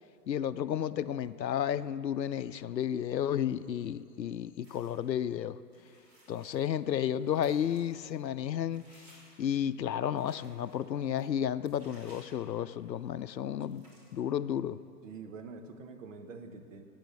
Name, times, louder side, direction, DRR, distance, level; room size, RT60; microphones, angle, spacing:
voice 1, 0.3-5.6 6.3-8.8 9.4-14.8, left 9 dB, 80° left, 15 dB, 0.6 m, -32 dB
sound 1, 4.6-5.2 5.7-13.0 13.3-13.4 13.6-14.2, equal, 25° right, 3.5 m, -61 dB
voice 2, 15.0-16.8, right 4 dB, 50° right, 6 dB, 1.2 m, -46 dB
12.5 x 8.6 x 7.9 m, 2.4 s
figure-of-eight pair, 120°, 50 cm